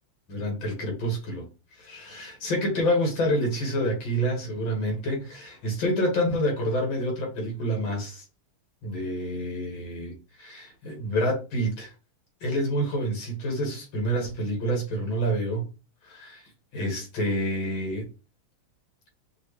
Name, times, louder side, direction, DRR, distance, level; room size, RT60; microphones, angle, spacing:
voice 1, 0.3-1.4 1.7-8.2 8.8-11.9 12.4-15.7 16.0-18.1, equal, 65° left, 2.4 m, -28 dB
5.9 x 2.2 x 3.2 m
omnidirectional pair, 2.3 m